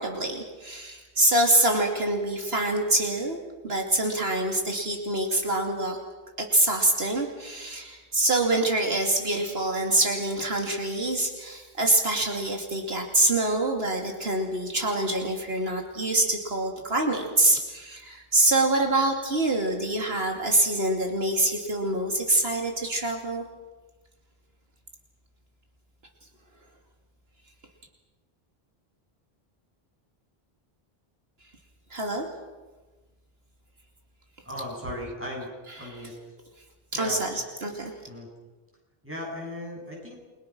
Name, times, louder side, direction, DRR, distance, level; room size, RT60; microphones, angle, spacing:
voice 1, 0.0-6.0 6.4-23.4 31.9-32.3 35.8-35.9 36.9-37.9, right 2 dB, 75° right, 2 dB, 3.0 m, -25 dB
voice 2, 34.4-35.5 35.8-36.1 36.9-37.2 38.1-38.3 39.0-40.2, left 1 dB, 10° right, -1 dB, 8.1 m, -36 dB
30.0 x 23.5 x 6.2 m, 1.2 s
omnidirectional pair, 1.0 m